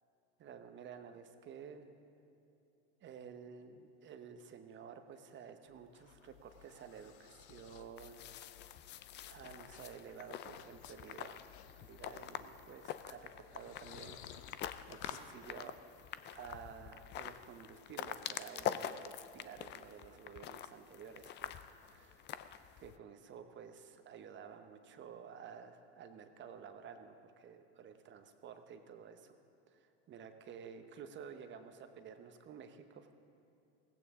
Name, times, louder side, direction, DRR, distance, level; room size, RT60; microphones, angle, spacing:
voice 1, 0.4-1.9 3.0-8.5 8.8-11.4 11.7-15.7 16.3-21.5 21.8-22.3 22.8-29.3 29.7-33.1, right 7 dB, 35° right, 8 dB, 1.0 m, -52 dB
sound 1, 5.7-15.3, left 10 dB, 75° left, 0.9 m, -55 dB
sound 2, 8.0-23.0, left 10 dB, 35° left, 0.5 m, -46 dB
16.5 x 16.0 x 3.7 m, 2.7 s
supercardioid pair, 110°, 33 cm